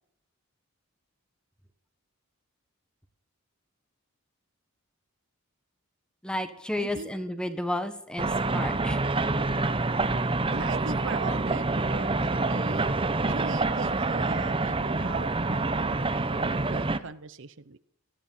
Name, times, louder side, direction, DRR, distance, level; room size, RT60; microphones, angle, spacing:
voice 1, 6.2-9.1, left 1 dB, 5° left, 9 dB, 1.4 m, -32 dB
voice 2, 6.8-7.1 10.5-17.8, right 4 dB, 60° right, 14 dB, 0.7 m, -40 dB
sound 1, 8.2-17.0, right 3 dB, 25° right, 0.8 m, -27 dB
18.5 x 13.0 x 5.7 m, 0.75 s
head